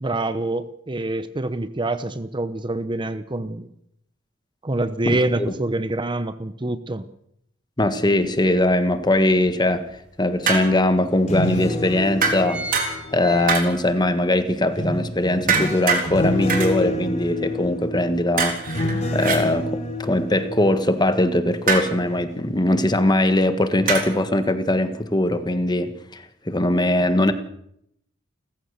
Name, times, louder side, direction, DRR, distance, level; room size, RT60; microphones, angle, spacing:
voice 1, 0.0-3.7 4.6-7.1, right 2 dB, 25° right, 0.8 m, -26 dB
voice 2, 7.8-9.9 10.2-12.6 13.1-27.3, left 1 dB, 20° left, 1.5 m, -21 dB
sound 1, 8.2-8.3 8.8-9.9 10.6-10.7 10.9-11.0 11.7-11.9 12.2-14.0 14.4-14.5, right 1 dB, 5° right, 3.9 m, -36 dB
sound 2, 10.5-11.0 12.2-13.2 13.5-14.0 15.5-16.1 16.5-16.7 18.4-19.4 21.7-22.0 23.9-24.2, right 5 dB, 45° right, 3.9 m, -24 dB
sound 3, 11.1-14.0 14.8-21.7 22.1-22.4, left 1 dB, 35° left, 2.9 m, -29 dB
29.5 x 15.0 x 6.6 m
head